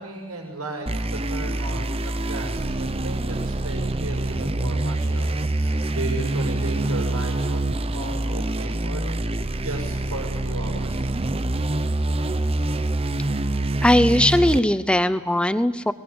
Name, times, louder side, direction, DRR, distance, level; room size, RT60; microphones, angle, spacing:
voice 1, 0.0-9.2 9.6-11.1, right 2 dB, 85° right, 0 dB, 6.1 m, -35 dB
sound 1, 0.9-14.6, right 2 dB, 25° right, 0.8 m, -25 dB
voice 2, 13.8-15.9, left 1 dB, 5° left, 13 dB, 0.7 m, -19 dB
22.5 x 20.5 x 9.7 m, 1.3 s
head